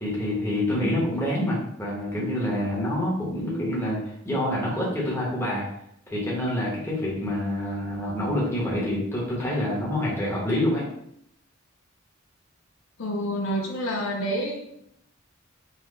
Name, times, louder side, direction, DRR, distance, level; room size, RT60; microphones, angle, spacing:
voice 1, 0.0-5.6 6.1-10.8, left 1 dB, 10° left, -6 dB, 1.0 m, -27 dB
voice 2, 13.0-14.7, equal, 70° left, 1 dB, 0.6 m, -28 dB
4.0 x 2.3 x 3.1 m, 0.73 s
head